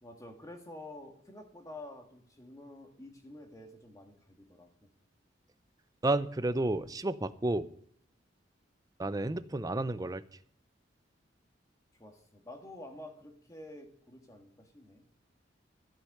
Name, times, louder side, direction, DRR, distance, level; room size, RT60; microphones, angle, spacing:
voice 1, 0.0-4.7 12.0-15.0, left 1 dB, 20° left, 3 dB, 1.8 m, -49 dB
voice 2, 6.0-7.7 9.0-10.2, right 2 dB, 20° right, 14 dB, 0.5 m, -31 dB
14.5 x 6.4 x 7.8 m, 0.66 s
head